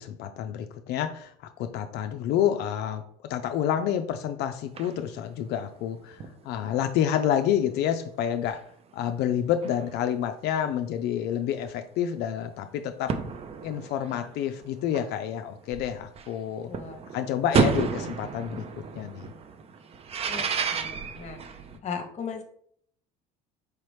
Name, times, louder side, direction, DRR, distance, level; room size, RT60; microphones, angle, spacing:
voice 1, 0.0-8.6 8.9-13.2 13.6-16.7 17.1-19.3, left 10 dB, 60° left, 8 dB, 0.4 m, -29 dB
sound 1, 4.8-5.0 5.6-5.7 6.1-6.5 7.2-7.3 7.5-7.6 8.5-8.6 9.5-9.9 10.7-10.8 11.7-11.8 12.5-12.6 13.1-16.3 16.7-21.8, right 6 dB, 30° right, 0.4 m, -31 dB
voice 2, 16.7-17.0 20.3-20.4 20.7-21.4 21.8-22.4, left 6 dB, 35° left, 7 dB, 0.8 m, -36 dB
4.7 x 2.9 x 3.2 m, 0.64 s
supercardioid pair, 95°, 19 cm